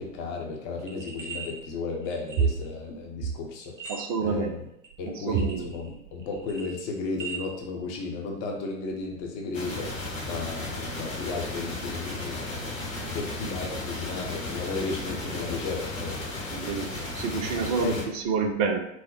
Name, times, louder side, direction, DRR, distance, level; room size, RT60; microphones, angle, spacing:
voice 1, 0.0-3.9 4.2-4.6 5.0-16.3 17.8-18.1, left 4 dB, 30° left, 0 dB, 0.8 m, -34 dB
sound 1, 0.8-1.5 2.0-2.7 3.6-4.4 4.8-4.9 5.4-5.9 6.2-7.4, right 5 dB, 75° right, 1.0 m, -39 dB
voice 2, 3.9-4.5 5.1-5.7 16.5-16.9 17.1-18.9, right 5 dB, 30° right, 5 dB, 0.4 m, -28 dB
sound 2, 9.5-18.0, left 2 dB, 75° left, 1.4 m, -34 dB
4.7 x 2.0 x 4.3 m, 0.78 s
figure-of-eight pair, 95°, 39 cm